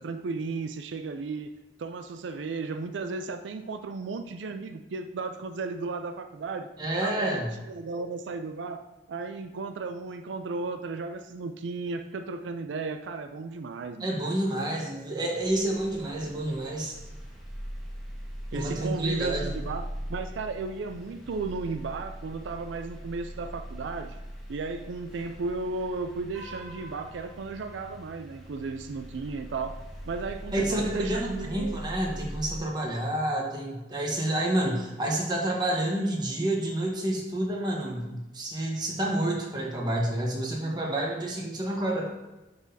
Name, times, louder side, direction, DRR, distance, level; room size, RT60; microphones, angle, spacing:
voice 1, 0.0-1.5 1.8-6.7 7.0-14.2 18.5-24.2 24.5-31.8 34.6-34.7, right 4 dB, 90° right, 8 dB, 0.4 m, -35 dB
voice 2, 6.8-7.5 14.0-17.0 18.5-19.6 30.5-42.1, right 1 dB, 25° right, -1 dB, 1.2 m, -29 dB
sound 1, 15.4-32.6, equal, ahead, 1.4 m, -41 dB
10.5 x 4.0 x 2.7 m, 1.1 s
head